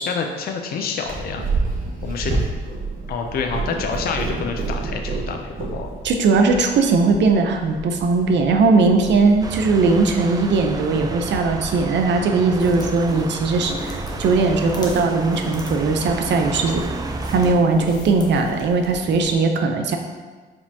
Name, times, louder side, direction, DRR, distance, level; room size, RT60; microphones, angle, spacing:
voice 1, 0.1-1.4 2.0-2.3 3.1-5.9, left 5 dB, 50° left, 4 dB, 0.4 m, -27 dB
Purr, 1.0-19.0, right 3 dB, 45° right, 1.0 m, -31 dB
voice 2, 6.0-16.8 17.3-20.0, right 3 dB, 65° right, 5 dB, 0.6 m, -19 dB
sound 1, 9.4-17.5, right 3 dB, 20° right, 0.3 m, -32 dB
sound 2, 12.6-19.3, left 1 dB, 20° left, 0.9 m, -36 dB
4.8 x 3.6 x 2.7 m, 1.4 s
cardioid pair, 90°, 20 cm